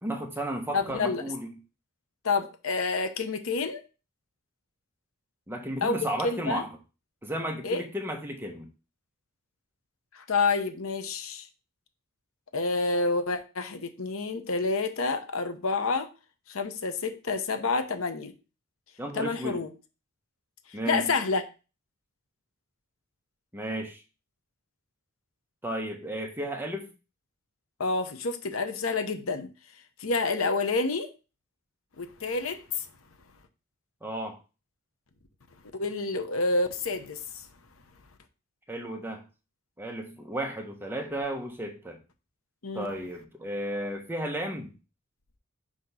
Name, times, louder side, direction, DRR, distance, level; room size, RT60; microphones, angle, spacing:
voice 1, 0.0-1.6 5.5-6.7 7.2-8.7 19.0-19.6 20.7-21.1 23.5-24.0 25.6-26.9 34.0-34.4 38.7-39.2 39.8-42.0 42.7-44.8, right 1 dB, 10° right, 1.0 m, -33 dB
voice 2, 0.7-1.2 2.2-3.8 5.8-6.0 6.2-6.6 7.6-7.8 10.1-11.5 12.5-16.1 16.5-18.3 19.1-19.7 20.9-21.4 27.8-29.5 30.0-31.1 32.0-32.8 35.7-37.4 42.6-42.9, left 3 dB, 70° left, 0.9 m, -28 dB
6.3 x 3.0 x 5.5 m
head